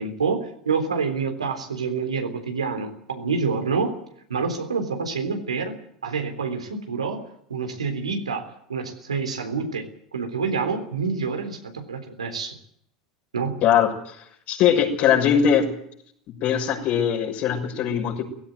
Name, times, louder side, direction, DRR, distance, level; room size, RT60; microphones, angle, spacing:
voice 1, 0.0-3.9 4.3-5.7 6.0-7.2 7.5-8.4 8.7-9.8 10.1-12.6 13.3-13.6, right 5 dB, 80° right, 5 dB, 3.7 m, -27 dB
voice 2, 13.6-14.1 14.5-15.7 16.3-18.2, left 8 dB, 50° left, 2 dB, 6.5 m, -21 dB
18.0 x 16.5 x 9.3 m, 0.67 s
figure-of-eight pair, 80°, 3 cm